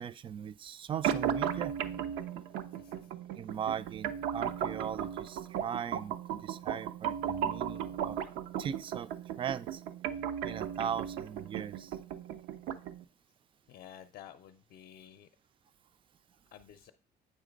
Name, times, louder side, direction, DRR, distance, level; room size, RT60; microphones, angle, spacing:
voice 1, 0.0-1.7 3.4-8.2 8.6-9.8 10.4-11.9, right 8 dB, 30° right, 0.4 m, -39 dB
sound 1, 1.0-13.0, right 9 dB, 90° right, 0.6 m, -36 dB
voice 2, 13.7-15.3 16.5-16.9, left 10 dB, 60° left, 0.6 m, -52 dB
8.4 x 3.2 x 5.2 m
cardioid pair, 110°, 17 cm